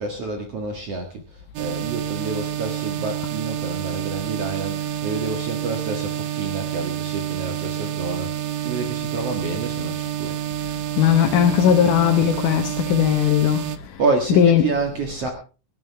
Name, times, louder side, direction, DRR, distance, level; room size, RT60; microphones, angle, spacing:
voice 1, 0.0-10.4 14.0-15.3, right 3 dB, 50° right, 2.5 m, -28 dB
sound 1, 1.6-13.8, right 11 dB, 90° right, 2.6 m, -28 dB
voice 2, 11.0-13.7 14.3-14.7, left 10 dB, 75° left, 2.7 m, -18 dB
23.0 x 11.5 x 3.5 m
omnidirectional pair, 3.8 m